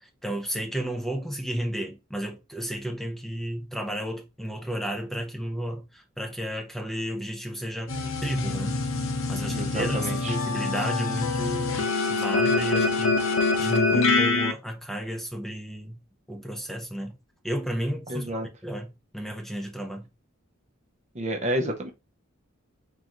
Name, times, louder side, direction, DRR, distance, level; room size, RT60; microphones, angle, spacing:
voice 1, 0.0-8.8 9.3-11.8 12.1-13.3 13.6-16.0 16.3-17.2 17.4-20.1, equal, ahead, 0.8 m, -32 dB
sound 1, 7.9-14.5, left 3 dB, 85° left, 0.8 m, -25 dB
voice 2, 9.5-10.4 18.1-18.5 21.1-21.9, right 1 dB, 35° right, 0.7 m, -30 dB
3.8 x 3.7 x 2.9 m
head